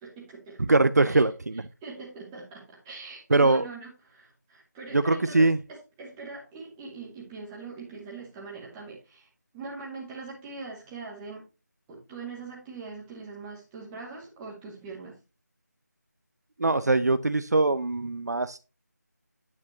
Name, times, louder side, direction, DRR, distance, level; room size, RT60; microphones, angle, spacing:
voice 1, 0.0-0.6 1.1-1.2 1.8-9.3 9.5-11.4 11.9-15.2, right 4 dB, 10° right, 1.8 m, -42 dB
voice 2, 0.7-1.6 3.3-3.6 4.9-5.6 16.6-18.6, right 2 dB, 65° right, 0.6 m, -22 dB
9.5 x 7.3 x 3.0 m
figure-of-eight pair, 160°, 10 cm